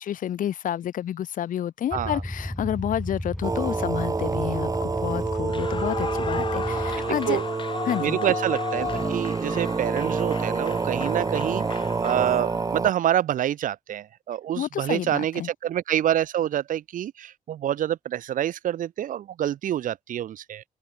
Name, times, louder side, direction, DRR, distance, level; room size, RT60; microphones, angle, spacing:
voice 1, 0.0-7.4 7.8-8.2 14.6-15.5, left 10 dB, 80° left, 1.3 m, -29 dB
sound 1, 1.9-7.5, equal, 5° left, 4.8 m, -33 dB
sound 2, 3.4-12.9, right 4 dB, 25° right, 1.3 m, -28 dB
Clapping / Cheering / Applause, 5.4-12.8, left 5 dB, 40° left, 5.3 m, -35 dB
voice 2, 8.0-20.6, right 11 dB, 80° right, 0.9 m, -27 dB
wide cardioid pair, 145°, 14 cm